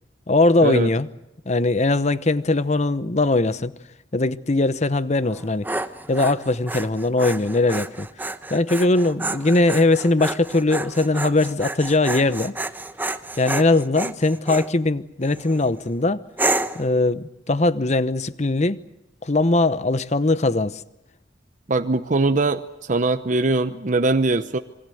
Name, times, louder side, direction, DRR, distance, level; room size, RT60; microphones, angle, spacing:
voice 1, 0.3-1.1 1.4-3.7 4.1-5.7 6.1-8.1 8.5-12.5 13.4-16.2 16.7-18.8 19.2-20.8, left 2 dB, 40° left, 0.9 m, -20 dB
Dog, 5.3-14.7 15.3-15.7 16.4-16.9, right 2 dB, 10° right, 0.9 m, -30 dB
voice 2, 21.7-24.6, right 2 dB, 45° right, 0.8 m, -21 dB
27.0 x 22.0 x 7.8 m
head